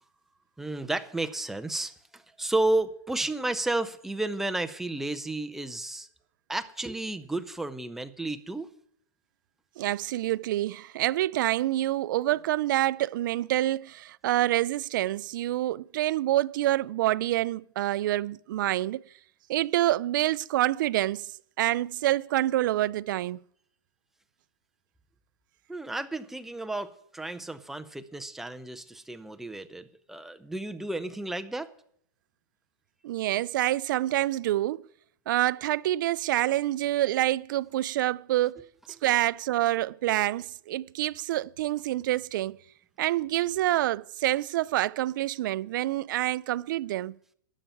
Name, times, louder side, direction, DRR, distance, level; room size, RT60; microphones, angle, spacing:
voice 1, 0.6-6.1 6.5-8.7 25.7-31.7, right 2 dB, 5° right, 0.5 m, -32 dB
voice 2, 9.8-19.0 19.5-21.3 21.6-23.4 33.0-34.8 35.3-38.6 39.0-42.6 43.0-47.2, right 15 dB, 70° right, 0.4 m, -27 dB
12.5 x 5.7 x 9.0 m
supercardioid pair, 160°, 11 cm